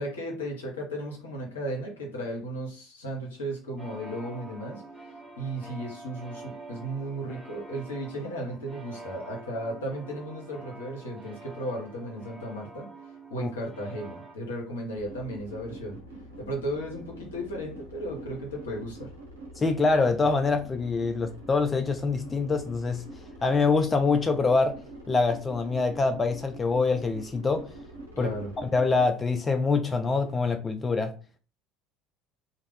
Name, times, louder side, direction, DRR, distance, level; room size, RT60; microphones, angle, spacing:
voice 1, 0.0-12.9 13.3-16.0 16.4-19.1 28.2-28.5, right 1 dB, 80° left, 0.8 m, -35 dB
sound 1, 3.8-14.3, right 3 dB, 15° right, 0.7 m, -46 dB
sound 2, 14.9-29.1, right 1 dB, 80° right, 0.7 m, -45 dB
voice 2, 19.6-23.1 23.4-24.8 25.1-27.7 28.2-28.3 28.6-31.1, left 4 dB, 25° left, 0.3 m, -25 dB
2.3 x 2.0 x 3.3 m
figure-of-eight pair, 65°, 0 cm